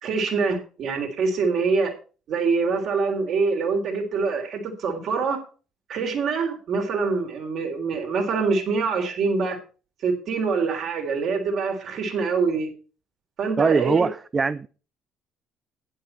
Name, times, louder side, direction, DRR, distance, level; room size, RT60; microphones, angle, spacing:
voice 1, 0.0-1.9 2.3-5.4 5.9-9.6 10.0-12.7 13.4-14.1, right 4 dB, 55° right, 3.7 m, -25 dB
voice 2, 13.6-14.7, right 4 dB, 30° right, 0.5 m, -21 dB
11.0 x 10.5 x 4.4 m
figure-of-eight pair, 50°, 0 cm